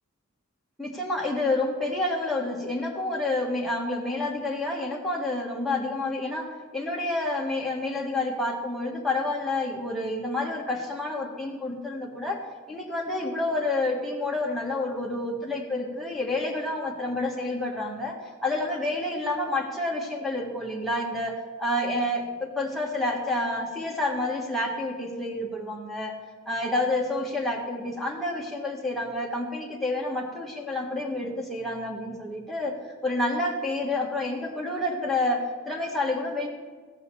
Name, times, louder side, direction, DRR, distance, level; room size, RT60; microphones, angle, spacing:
voice 1, 0.8-12.4 12.7-26.2 26.5-32.7 33.0-36.5, left 2 dB, ahead, -2 dB, 1.7 m, -29 dB
15.5 x 5.5 x 7.0 m, 1.5 s
head